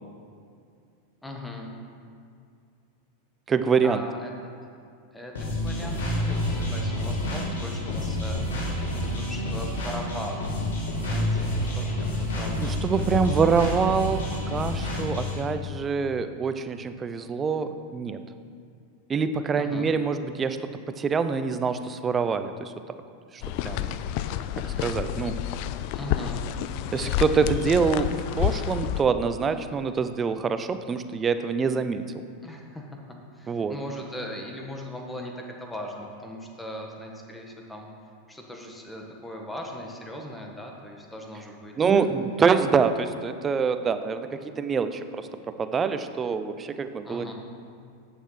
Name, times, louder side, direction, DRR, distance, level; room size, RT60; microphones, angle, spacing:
voice 1, 1.2-1.8 3.8-4.3 5.1-5.3 5.6-8.4 9.0-10.4 10.9-12.8 13.1-13.5 19.5-19.9 25.9-26.4 32.4-33.0 33.3-37.9 38.3-42.1 47.0-47.3, equal, 5° left, 1 dB, 1.5 m, -39 dB
voice 2, 3.5-4.0 12.6-14.2 14.5-18.2 19.1-20.6 21.0-22.7 23.3-23.9 24.8-25.3 26.9-32.0 33.5-33.7 41.8-45.3 45.6-47.3, right 5 dB, 25° right, 10 dB, 0.6 m, -25 dB
sound 1, 5.3-15.4, left 1 dB, 85° left, 2.6 m, -29 dB
sound 2, 23.4-29.0, left 11 dB, 55° left, 0.4 m, -29 dB
8.8 x 7.0 x 5.7 m, 2.4 s
hypercardioid pair, 115°, 0 cm